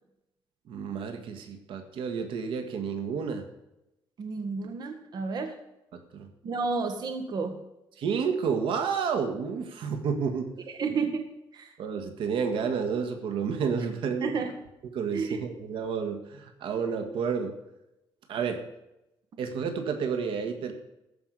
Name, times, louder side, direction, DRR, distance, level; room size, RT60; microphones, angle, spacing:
voice 1, 0.7-3.5 5.9-6.3 8.0-10.5 11.8-14.3 14.9-17.5 18.3-18.6 19.4-20.7, right 6 dB, 80° right, 6 dB, 1.8 m, -30 dB
voice 2, 4.2-5.5 6.4-7.6 10.7-11.2 11.5-11.7 14.2-14.5 15.1-15.4, right 4 dB, 50° right, 6 dB, 1.7 m, -31 dB
14.0 x 5.8 x 8.3 m, 0.89 s
cardioid pair, 135°, 9 cm